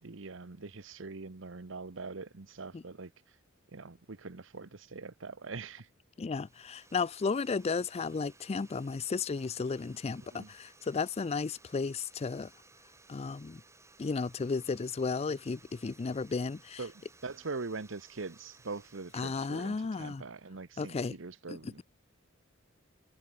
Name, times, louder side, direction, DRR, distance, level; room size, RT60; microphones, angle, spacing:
voice 1, 0.0-3.1 3.7-5.9 10.3-10.5 16.8-21.8, right 3 dB, 70° right, 1.0 m, -43 dB
voice 2, 6.2-12.5 13.1-13.6 14.0-16.8 19.1-20.2 20.8-21.1 21.5-21.8, left 4 dB, 30° left, 0.4 m, -34 dB
sound 1, 6.4-19.8, right 3 dB, 15° right, 4.4 m, -60 dB
head